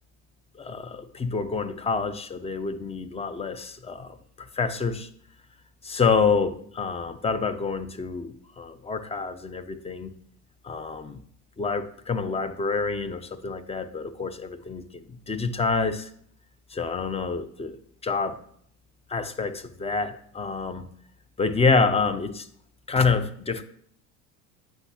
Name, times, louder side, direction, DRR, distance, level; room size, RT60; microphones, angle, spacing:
voice 1, 0.5-5.1 5.8-10.1 10.6-11.2 11.6-16.1 16.7-17.8 18.0-18.4 19.1-20.9 21.4-22.5 22.9-23.6, left 4 dB, 15° left, 12 dB, 0.6 m, -27 dB
7.8 x 5.5 x 2.8 m, 0.63 s
hypercardioid pair, 80°, 41 cm